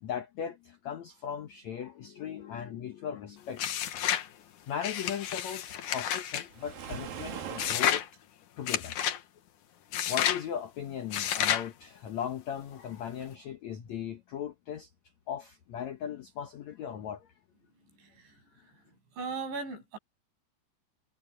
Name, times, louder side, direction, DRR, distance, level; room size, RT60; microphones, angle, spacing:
voice 1, 0.0-3.9 4.7-8.0 8.6-8.9 10.1-14.9 15.3-17.3, left 8 dB, 80° left, 1.6 m, -38 dB
sound 1, 3.6-4.3 4.8-6.4 7.6-8.1 8.7-9.2 9.9-10.4 11.1-11.7, left 10 dB, 65° left, 2.1 m, -30 dB
Waves surf, 6.5-8.0, right 8 dB, 55° right, 3.9 m, -40 dB
voice 2, 18.0-18.3 19.2-20.0, right 4 dB, 90° right, 10.5 m, -37 dB
omnidirectional pair, 5.0 m